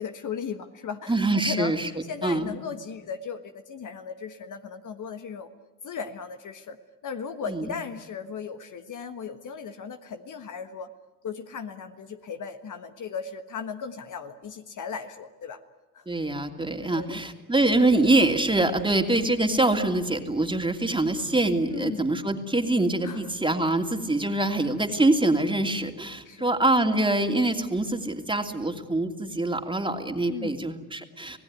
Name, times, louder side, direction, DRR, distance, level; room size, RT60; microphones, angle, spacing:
voice 1, 0.0-5.5 5.8-6.8 7.0-10.9 11.2-15.6 15.9-16.0 16.8-17.2 21.7-22.3 23.0-23.3 24.5-24.7 26.2-26.5 30.2-30.6, left 6 dB, 45° left, 8 dB, 1.5 m, -37 dB
voice 2, 1.1-1.9 2.2-2.5 7.5-7.6 16.1-31.4, right 2 dB, 10° right, 5 dB, 2.7 m, -24 dB
27.0 x 18.0 x 9.5 m, 1.2 s
hypercardioid pair, 60°, 44 cm